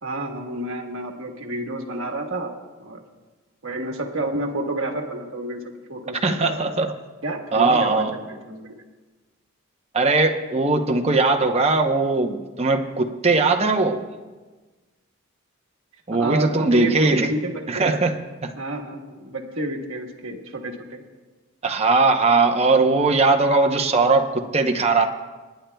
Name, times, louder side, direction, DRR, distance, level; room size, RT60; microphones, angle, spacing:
voice 1, 0.0-2.5 2.8-3.0 3.6-6.7 7.2-8.8 16.1-17.8 18.5-21.0, right 1 dB, 60° right, 1 dB, 1.4 m, -30 dB
voice 2, 6.2-6.9 7.5-8.1 9.9-14.1 16.1-17.3 17.7-18.5 21.6-25.1, right 3 dB, 30° right, 3 dB, 0.8 m, -20 dB
27.0 x 10.0 x 2.3 m, 1.3 s
head